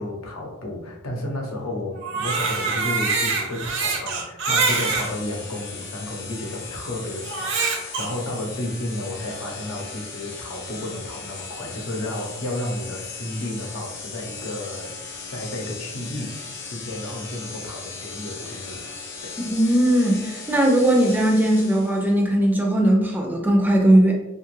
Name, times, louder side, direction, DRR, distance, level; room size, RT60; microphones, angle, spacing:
voice 1, 0.0-15.0 15.3-18.8, left 1 dB, 90° left, 0 dB, 0.7 m, -32 dB
Crying sobbing, 2.0-5.1 5.8-5.9 7.2-8.1, right 4 dB, 60° right, 0.6 m, -24 dB
sound 1, 4.6-22.1, left 4 dB, 55° left, 0.6 m, -37 dB
voice 2, 19.4-24.1, right 1 dB, 10° right, 0 dB, 0.4 m, -19 dB
2.8 x 2.3 x 3.0 m, 0.95 s
head